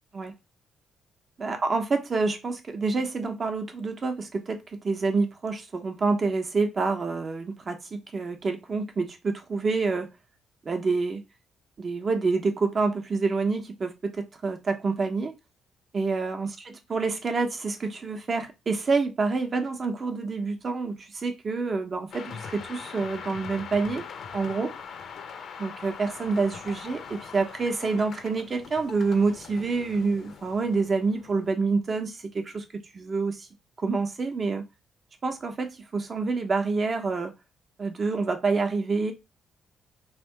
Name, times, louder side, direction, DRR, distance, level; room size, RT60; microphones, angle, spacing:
voice 1, 1.4-10.1 10.6-11.2 11.8-15.3 15.9-16.5 16.9-24.0 24.3-24.7 25.6-32.6 32.9-33.5 33.8-34.6 35.2-37.3 37.8-39.1, right 4 dB, 40° right, 1.1 m, -27 dB
sound 1, 22.1-31.7, left 6 dB, 65° left, 0.8 m, -42 dB
3.4 x 2.8 x 4.6 m
cardioid pair, 90°, 0 cm